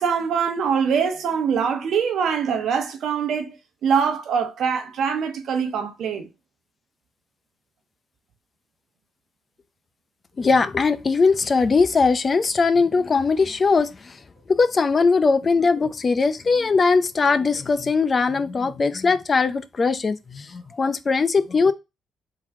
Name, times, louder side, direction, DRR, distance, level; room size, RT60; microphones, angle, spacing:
voice 1, 0.0-3.6 3.8-6.3, right 6 dB, 70° right, 1.1 m, -23 dB
voice 2, 10.4-14.2 14.5-21.7, left 4 dB, 35° left, 0.5 m, -20 dB
3.8 x 3.0 x 4.7 m
cardioid pair, 90°, 0 cm